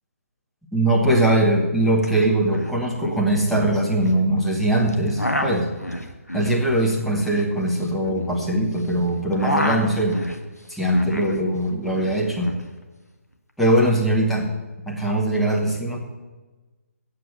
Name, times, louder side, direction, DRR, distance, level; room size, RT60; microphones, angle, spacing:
voice 1, 0.7-5.7 6.3-10.2 10.7-12.5 13.6-14.5 14.9-16.0, right 1 dB, ahead, -4 dB, 1.1 m, -21 dB
sound 1, 2.0-2.1 2.3-2.7 3.0-4.2 4.9-8.9 9.1-11.4 11.7-12.6, left 1 dB, 90° left, 1.5 m, -29 dB
9.0 x 7.7 x 8.0 m, 1.2 s
figure-of-eight pair, 145°, 8 cm